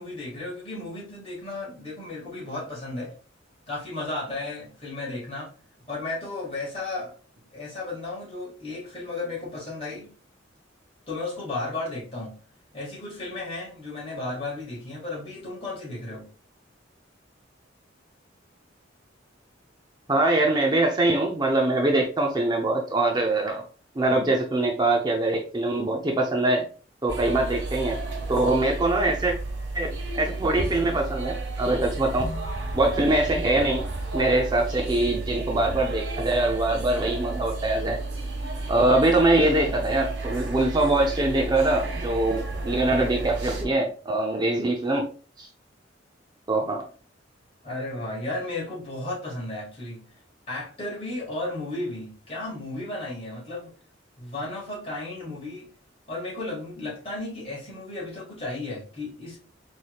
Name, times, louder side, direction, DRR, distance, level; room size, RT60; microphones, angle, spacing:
voice 1, 0.0-3.1 3.7-5.5 5.9-10.1 11.1-12.3 12.7-16.3 47.6-50.1 50.5-53.7 54.2-55.7 56.1-59.4, left 2 dB, 30° left, 2.1 m, -34 dB
voice 2, 20.1-23.6 24.0-26.6 27.0-28.0 28.3-29.3 29.7-32.3 32.7-33.8 34.1-38.0 38.7-45.1 45.4-45.5 46.5-46.8, right 2 dB, 25° right, 0.5 m, -23 dB
sound 1, 27.1-43.6, right 2 dB, 85° right, 1.7 m, -32 dB
4.2 x 3.2 x 2.4 m
head